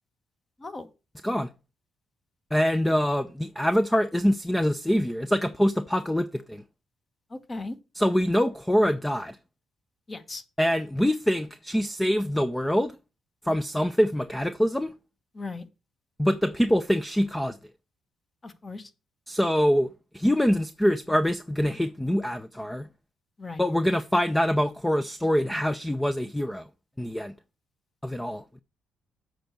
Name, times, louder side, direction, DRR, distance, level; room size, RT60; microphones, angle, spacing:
voice 1, 2.5-6.6 8.0-9.4 10.6-13.0 13.4-14.9 16.2-17.6 19.3-19.9 20.1-22.9 23.6-26.7 27.0-27.3 28.0-28.6, equal, 5° left, 0.5 m, -24 dB
voice 2, 7.3-7.8 10.1-10.4 15.3-15.7 18.4-18.9 23.4-23.6, left 3 dB, 30° left, 1.3 m, -37 dB
7.7 x 4.5 x 6.6 m
cardioid pair, 90°, 0 cm